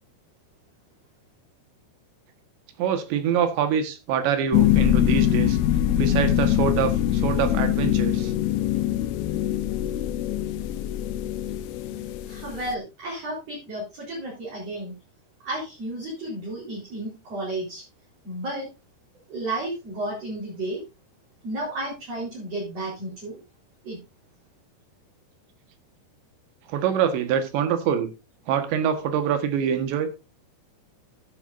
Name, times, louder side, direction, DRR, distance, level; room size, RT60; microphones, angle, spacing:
voice 1, 2.8-5.6 6.0-8.3 26.7-28.1 28.5-30.1, right 8 dB, 85° right, 8 dB, 3.8 m, -25 dB
sound 1, 4.5-12.7, left 12 dB, 75° left, 2.5 m, -23 dB
voice 2, 12.3-14.9 15.4-17.8 18.2-18.7 19.3-20.8 21.4-23.4 23.8-24.0, right 1 dB, 35° right, -5 dB, 5.1 m, -32 dB
14.0 x 10.5 x 2.6 m, 0.28 s
omnidirectional pair, 5.0 m